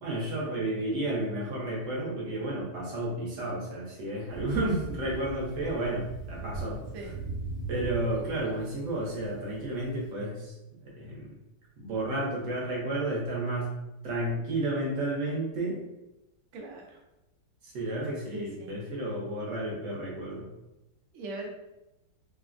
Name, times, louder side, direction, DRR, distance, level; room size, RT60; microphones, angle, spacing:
voice 1, 0.0-6.8 7.7-10.5 10.8-11.3 11.8-13.7 14.0-15.8 17.6-20.5, right 1 dB, 55° right, -3 dB, 1.0 m, -32 dB
Thunder, 4.3-10.0, right 3 dB, 70° left, 1.2 m, -39 dB
voice 2, 16.5-17.0 18.3-18.7 21.1-21.5, right 2 dB, 85° right, 0 dB, 0.6 m, -40 dB
3.2 x 2.1 x 2.4 m, 0.94 s
omnidirectional pair, 1.9 m